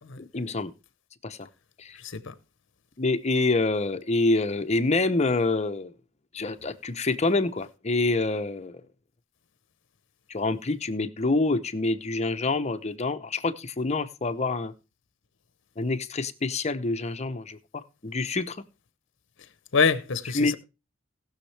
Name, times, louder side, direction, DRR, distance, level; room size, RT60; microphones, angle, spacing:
voice 1, 0.2-0.7 1.2-1.5 1.8-2.0 3.0-5.9 6.3-8.8 10.3-14.7 15.8-18.6 20.3-20.5, left 3 dB, 35° left, 0.7 m, -27 dB
voice 2, 2.0-2.3 19.7-20.5, left 5 dB, 65° left, 0.8 m, -25 dB
19.0 x 6.4 x 3.3 m
head